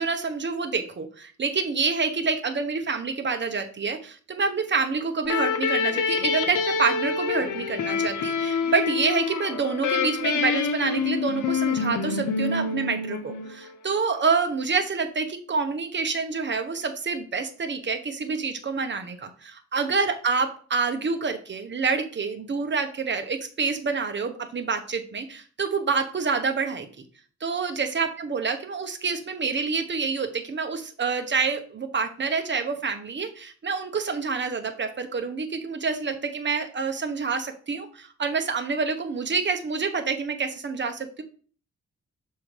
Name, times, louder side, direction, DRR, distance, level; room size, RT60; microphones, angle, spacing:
voice 1, 0.0-26.9 27.4-41.2, right 5 dB, 35° right, 6 dB, 1.0 m, -27 dB
sound 1, 5.2-13.7, left 5 dB, 80° left, 0.8 m, -27 dB
6.5 x 3.5 x 4.6 m, 0.42 s
cardioid pair, 90°, 30 cm